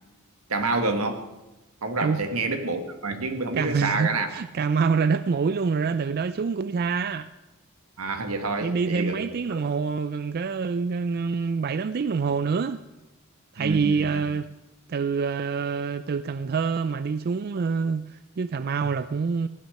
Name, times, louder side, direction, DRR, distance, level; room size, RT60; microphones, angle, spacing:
voice 1, 0.5-1.3 1.8-4.3 8.0-9.6 13.6-14.2, right 3 dB, 85° right, 1.5 m, -28 dB
voice 2, 3.5-7.3 8.6-12.8 13.5-14.5 14.9-19.5, right 5 dB, 45° right, 0.4 m, -26 dB
15.5 x 6.4 x 9.4 m
head